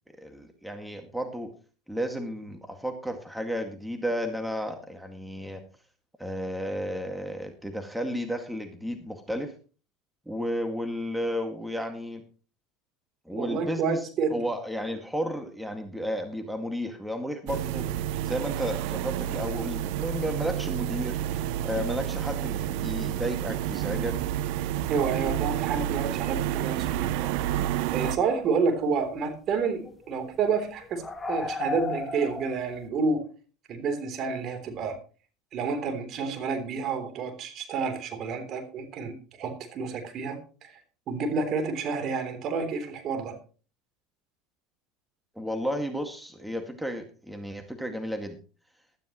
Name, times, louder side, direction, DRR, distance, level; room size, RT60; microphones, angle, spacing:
voice 1, 0.2-1.5 1.9-5.6 6.2-9.5 10.3-12.3 13.3-17.9 18.2-21.2 21.6-24.2 45.4-48.4, equal, 5° right, 5 dB, 2.0 m, -33 dB
voice 2, 13.3-14.4 24.9-27.4 27.9-33.2 33.7-35.0 35.5-40.8 41.1-43.4, right 5 dB, 45° right, 7 dB, 3.4 m, -29 dB
sound 1, 17.5-28.2, right 12 dB, 65° right, 0.8 m, -30 dB
sound 2, 27.9-28.1 29.0-29.2 29.6-32.9, left 4 dB, 20° left, 1.5 m, -35 dB
15.5 x 12.5 x 3.1 m, 0.37 s
hypercardioid pair, 80°, 0 cm